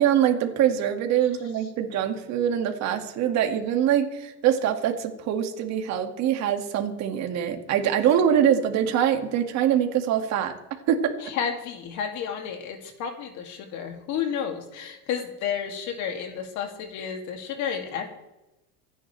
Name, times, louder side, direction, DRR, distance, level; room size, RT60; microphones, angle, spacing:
voice 1, 0.0-10.5 10.9-11.1, right 9 dB, 50° right, 5 dB, 2.2 m, -24 dB
voice 2, 11.2-18.1, left 7 dB, 55° left, 4 dB, 2.7 m, -31 dB
26.5 x 10.0 x 3.4 m, 0.98 s
cardioid pair, 145°, 35 cm